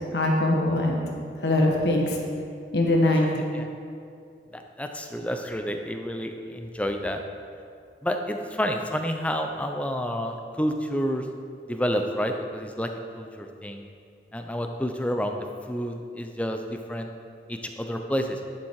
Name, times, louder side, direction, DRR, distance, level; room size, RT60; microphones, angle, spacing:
voice 1, 0.1-1.0 1.4-2.2 2.7-3.3, left 1 dB, 75° left, 0 dB, 1.5 m, -22 dB
voice 2, 3.1-3.7 4.5-7.2 8.0-11.3 11.7-13.9 14.3-15.4 15.7-17.1 17.5-18.4, equal, 10° left, 4 dB, 0.6 m, -29 dB
11.0 x 7.1 x 4.7 m, 2.5 s
head